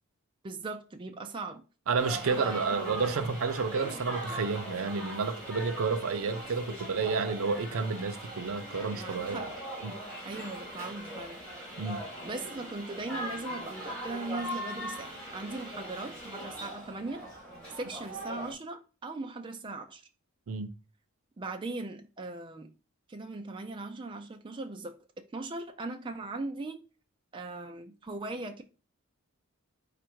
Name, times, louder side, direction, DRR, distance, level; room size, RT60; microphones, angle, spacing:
voice 1, 0.4-1.6 2.4-2.9 8.9-9.5 10.2-11.4 12.2-17.3 17.7-20.1 21.4-22.8 23.1-26.8 27.3-28.6, right 2 dB, 20° right, 0.3 m, -39 dB
voice 2, 1.9-9.5 9.8-10.0 11.8-12.0 20.5-20.7, right 4 dB, 70° right, 0.5 m, -30 dB
sound 1, 2.0-18.5, equal, 5° left, 1.8 m, -40 dB
4.2 x 2.5 x 4.5 m
head